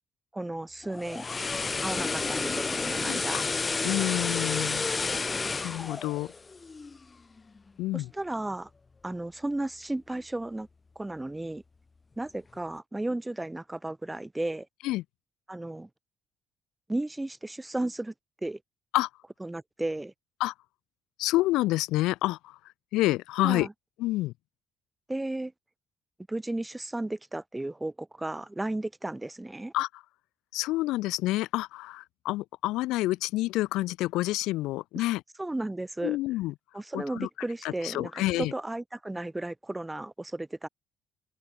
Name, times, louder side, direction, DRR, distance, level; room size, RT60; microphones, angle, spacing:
voice 1, 0.3-1.2 1.8-3.4 7.9-8.7 9.0-10.7 10.9-11.6 12.2-14.7 15.5-15.9 16.9-18.1 18.4-18.6 19.4-20.1 23.4-23.7 25.1-25.5 26.3-29.7 35.0-35.1 35.4-36.2 36.7-40.7, right 2 dB, 10° right, 1.2 m, -34 dB
sound 1, 0.8-7.0 7.4-7.6, left 4 dB, 30° left, 0.7 m, -31 dB
voice 2, 3.1-3.4 3.8-4.9 5.6-6.3 7.8-8.1 14.8-15.0 18.9-19.1 20.4-20.5 21.2-22.6 22.9-23.7 24.0-24.3 29.7-30.0 30.5-35.2 36.0-36.5 36.9-37.3 37.6-38.5, left 18 dB, 90° left, 0.5 m, -28 dB
open air
cardioid pair, 80°, 0 cm